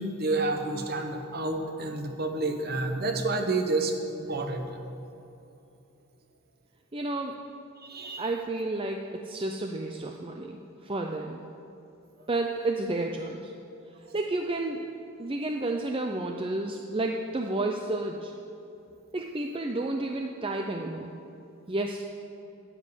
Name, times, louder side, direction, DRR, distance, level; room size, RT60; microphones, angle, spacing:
voice 1, 0.2-4.8 7.8-8.3, right 2 dB, 45° right, 5 dB, 1.2 m, -29 dB
voice 2, 6.9-7.4 8.2-11.4 12.3-13.5 14.1-14.9 15.2-18.3 19.1-21.1 21.7-22.0, right 2 dB, 25° right, 2 dB, 0.5 m, -31 dB
10.0 x 9.8 x 8.1 m, 2.8 s
head